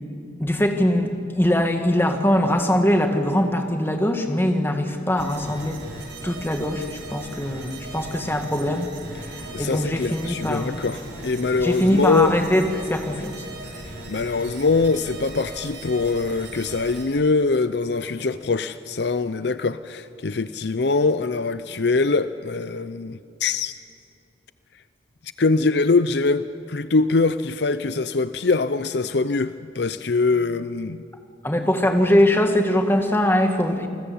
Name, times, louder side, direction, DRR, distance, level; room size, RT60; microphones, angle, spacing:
voice 1, 0.4-5.8 6.2-8.9 9.2-10.8 11.6-13.3 31.4-33.9, left 1 dB, 10° left, 2.0 m, -22 dB
sound 1, 5.2-17.0, right 2 dB, 75° right, 6.0 m, -38 dB
voice 2, 9.5-12.3 14.1-23.7 25.4-31.0, left 3 dB, 60° left, 0.6 m, -23 dB
29.0 x 19.5 x 8.7 m
head